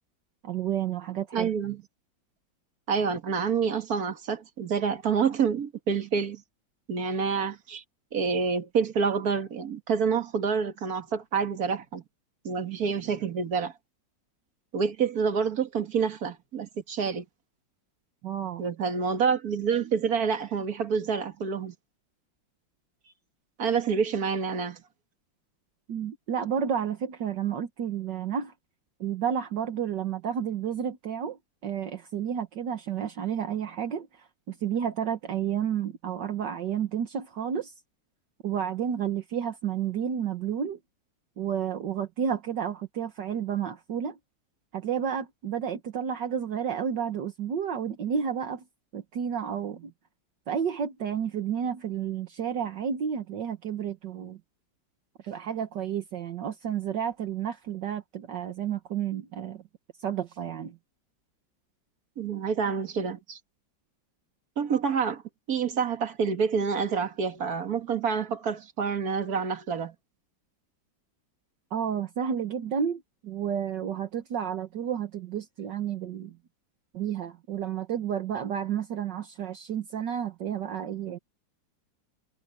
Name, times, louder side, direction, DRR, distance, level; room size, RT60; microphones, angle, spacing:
voice 1, 0.4-1.5 18.2-18.7 25.9-28.5 29.0-37.7 38.4-40.8 41.4-44.2 44.7-48.6 48.9-49.9 50.5-54.4 55.2-59.6 60.0-60.8 71.7-76.4 76.9-81.2, right 8 dB, 65° right, 1.9 m, -31 dB
voice 2, 1.3-1.8 2.9-6.4 6.9-7.8 8.1-12.0 12.4-13.7 14.7-17.2 18.6-21.7 23.6-24.8 62.2-63.4 64.6-65.2 65.5-69.9, right 6 dB, 50° right, 2.2 m, -27 dB
omnidirectional pair, 2.1 m